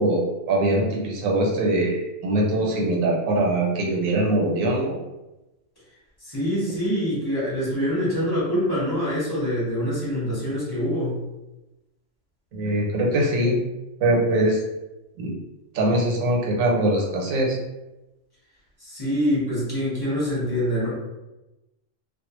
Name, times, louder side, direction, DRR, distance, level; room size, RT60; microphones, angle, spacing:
voice 1, 0.0-5.0 12.5-13.6 14.0-14.6 15.2-15.3 15.7-17.6, right 1 dB, 90° right, -1 dB, 1.1 m, -22 dB
voice 2, 6.2-11.2 18.8-20.9, equal, 20° left, -9 dB, 1.0 m, -25 dB
2.4 x 2.1 x 3.0 m, 1.0 s
omnidirectional pair, 1.4 m